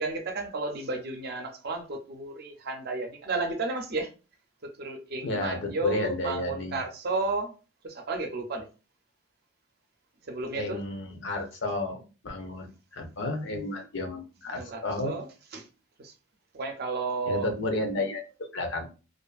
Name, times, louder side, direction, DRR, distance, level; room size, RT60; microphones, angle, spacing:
voice 1, 0.0-4.1 4.8-7.5 7.8-8.7 10.3-10.8 14.5-15.3 15.5-15.7 16.0-16.1 16.5-17.5, right 3 dB, 55° right, 0.5 m, -32 dB
voice 2, 5.2-6.8 10.5-15.2 17.3-18.9, left 2 dB, 65° left, 0.6 m, -32 dB
2.5 x 2.4 x 2.3 m
head